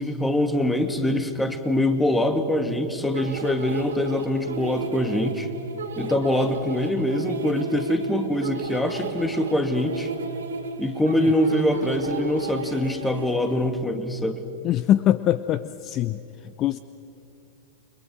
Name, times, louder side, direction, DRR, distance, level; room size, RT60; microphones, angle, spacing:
voice 1, 0.0-5.5 6.0-10.1 10.8-14.4, left 1 dB, 5° left, 8 dB, 2.3 m, -24 dB
sound 1, 3.1-13.7, right 4 dB, 75° right, 2.8 m, -34 dB
voice 2, 14.6-16.8, left 12 dB, 35° left, 14 dB, 0.7 m, -23 dB
30.0 x 24.0 x 6.2 m, 2.8 s
figure-of-eight pair, 95°, 0 cm